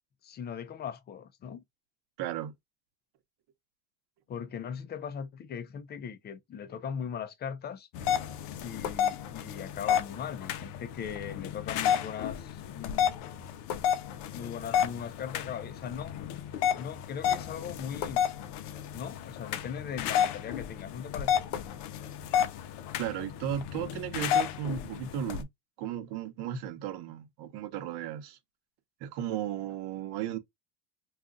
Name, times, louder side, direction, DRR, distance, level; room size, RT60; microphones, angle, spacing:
voice 1, 0.2-1.6 4.3-7.9 8.6-13.4 14.3-16.1 16.8-18.3 18.9-21.4, left 7 dB, 25° left, 0.4 m, -39 dB
voice 2, 2.2-2.5 23.0-25.5 25.8-28.4 29.0-30.4, right 10 dB, 55° right, 0.9 m, -35 dB
sound 1, 7.9-25.4, left 9 dB, 60° left, 0.6 m, -31 dB
2.4 x 2.3 x 3.8 m
supercardioid pair, 110°, 49 cm